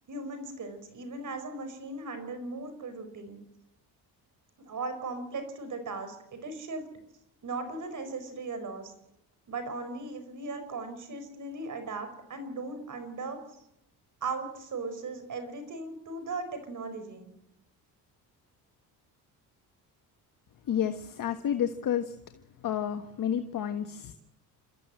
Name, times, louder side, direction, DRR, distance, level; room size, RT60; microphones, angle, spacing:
voice 1, 0.0-3.4 4.7-6.9 7.4-8.9 9.5-13.4 14.2-17.3, right 3 dB, 50° right, 9 dB, 4.9 m, -38 dB
voice 2, 20.7-22.2 22.6-24.1, left 9 dB, 55° left, 7 dB, 1.4 m, -30 dB
29.5 x 14.0 x 7.8 m, 0.84 s
cardioid pair, 95°, 38 cm